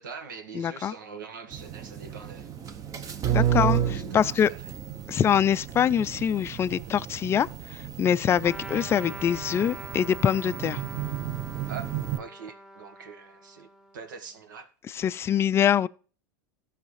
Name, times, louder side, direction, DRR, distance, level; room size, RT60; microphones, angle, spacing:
voice 1, 0.0-2.5 3.3-4.6 11.7-14.7, right 5 dB, 80° right, 1.6 m, -43 dB
voice 2, 0.5-0.9 3.3-4.5 5.1-7.5 8.0-10.8 14.9-15.9, left 9 dB, 25° left, 0.4 m, -24 dB
sound 1, 1.5-12.2, right 10 dB, 35° right, 1.0 m, -32 dB
Trumpet, 8.4-14.3, equal, 5° right, 0.9 m, -44 dB
15.5 x 5.7 x 3.3 m
hypercardioid pair, 105°, 10 cm